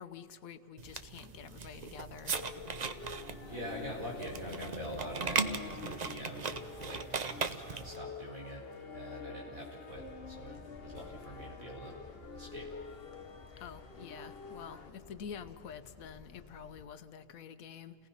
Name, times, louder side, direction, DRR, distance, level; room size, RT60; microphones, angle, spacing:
voice 1, 0.0-2.3 13.6-18.0, left 7 dB, 85° left, 11 dB, 1.3 m, -47 dB
sound 1, 0.8-8.0, right 5 dB, 40° right, 0.7 m, -38 dB
sound 2, 2.3-14.9, left 5 dB, 45° left, 1.2 m, -48 dB
voice 2, 3.5-7.0 7.3-8.6 8.9-12.0 12.3-12.7, equal, 80° right, -2 dB, 5.4 m, -44 dB
sound 3, 9.9-16.9, left 3 dB, 30° left, 0.8 m, -55 dB
29.5 x 18.5 x 5.6 m, 2.2 s
omnidirectional pair, 1.4 m